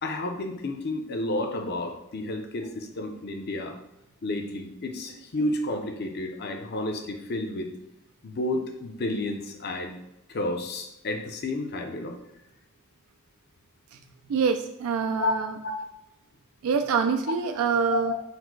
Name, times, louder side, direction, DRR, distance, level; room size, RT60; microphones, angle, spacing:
voice 1, 0.0-3.8 4.2-7.7 8.2-9.9 10.3-12.2 15.2-15.3 15.6-15.8 17.9-18.2, left 2 dB, 50° left, 5 dB, 0.5 m, -31 dB
voice 2, 14.3-15.6 16.6-18.1, right 5 dB, 85° right, 6 dB, 0.3 m, -25 dB
4.1 x 2.1 x 4.5 m, 0.87 s
head